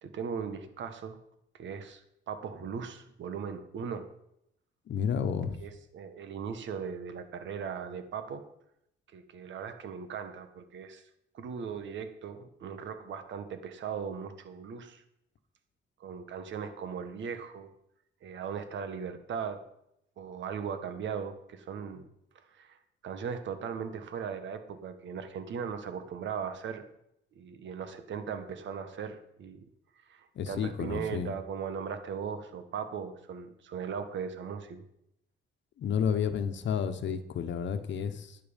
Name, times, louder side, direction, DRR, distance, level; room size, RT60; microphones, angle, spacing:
voice 1, 0.0-1.2 1.5-4.1 5.6-8.4 9.1-11.0 11.3-15.0 16.0-17.7 18.2-19.6 20.2-22.0 22.3-22.8 23.0-26.8 27.3-29.6 30.1-34.8, right 6 dB, 70° right, 9 dB, 1.5 m, -38 dB
voice 2, 4.9-5.6 30.3-31.3 35.8-38.4, left 7 dB, 65° left, 10 dB, 1.1 m, -31 dB
11.5 x 9.6 x 5.3 m, 0.77 s
cardioid pair, 90°, 20 cm